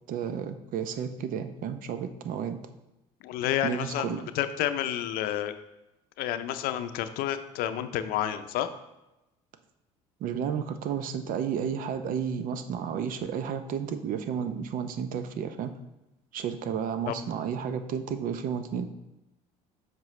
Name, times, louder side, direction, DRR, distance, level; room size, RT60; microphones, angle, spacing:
voice 1, 0.1-2.6 3.6-4.3 10.2-15.7 16.3-18.9, right 7 dB, 60° right, 10 dB, 0.7 m, -32 dB
voice 2, 3.2-5.5 6.2-8.7 17.1-17.2, left 11 dB, 70° left, 10 dB, 0.6 m, -30 dB
7.4 x 5.3 x 3.2 m, 0.96 s
supercardioid pair, 85°, 16 cm